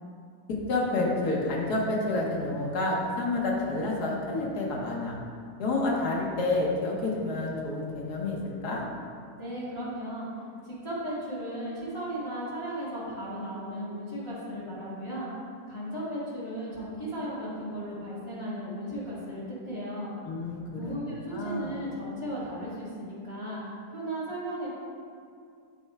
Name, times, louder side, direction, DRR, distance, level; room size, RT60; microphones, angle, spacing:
voice 1, 0.7-5.1 5.6-8.8 20.2-20.9 21.3-21.8, left 2 dB, 85° left, -3 dB, 1.7 m, -29 dB
voice 2, 9.4-10.3 10.6-15.3 15.7-20.1 20.8-23.6 23.9-24.7, equal, 20° left, -13 dB, 1.7 m, -36 dB
8.8 x 3.3 x 4.7 m, 2.3 s
omnidirectional pair, 1.7 m